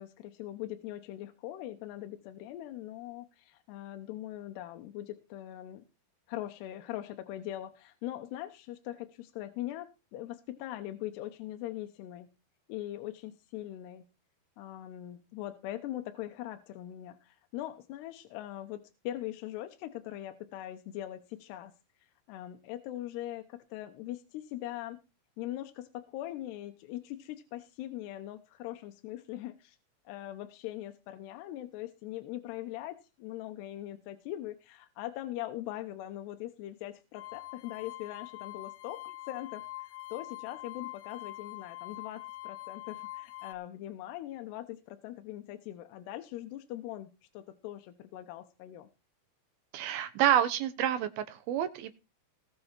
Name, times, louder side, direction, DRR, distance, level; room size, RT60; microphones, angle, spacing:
voice 1, 0.0-5.8 6.3-12.3 12.7-14.1 14.6-21.7 22.3-25.0 25.4-29.8 30.1-48.9, left 14 dB, 85° left, 7 dB, 3.0 m, -41 dB
sound 1, 37.1-43.5, left 18 dB, 70° left, 2.9 m, -44 dB
voice 2, 49.7-51.9, right 11 dB, 75° right, 12 dB, 2.6 m, -28 dB
19.5 x 6.8 x 4.5 m, 0.29 s
omnidirectional pair, 4.7 m